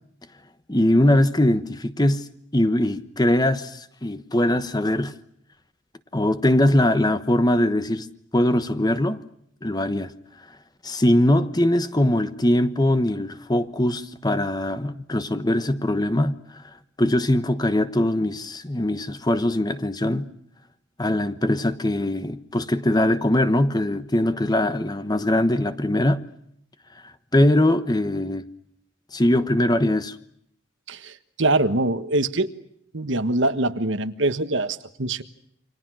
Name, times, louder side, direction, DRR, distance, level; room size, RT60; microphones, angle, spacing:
voice 1, 0.7-2.3 2.5-5.1 6.1-8.1 8.3-9.2 9.6-10.1 10.8-16.7 17.0-20.3 21.0-26.2 27.3-28.5 29.1-30.2, left 1 dB, 20° left, 1.1 m, -21 dB
voice 2, 30.9-32.5 32.9-35.2, right 2 dB, 60° right, 1.4 m, -23 dB
29.0 x 26.0 x 6.3 m
head